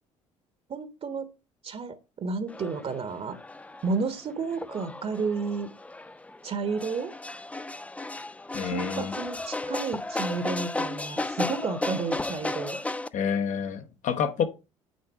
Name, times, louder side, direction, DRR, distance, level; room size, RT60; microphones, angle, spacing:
voice 1, 0.7-1.3 1.6-3.4 3.8-5.7 6.4-7.1 8.6-12.8, right 4 dB, 40° right, 1.2 m, -31 dB
sound 1, 2.5-13.1, left 2 dB, 10° left, 0.4 m, -34 dB
voice 2, 8.5-9.1 13.1-14.4, left 7 dB, 50° left, 1.1 m, -28 dB
9.3 x 4.4 x 4.6 m
figure-of-eight pair, 55°, 16 cm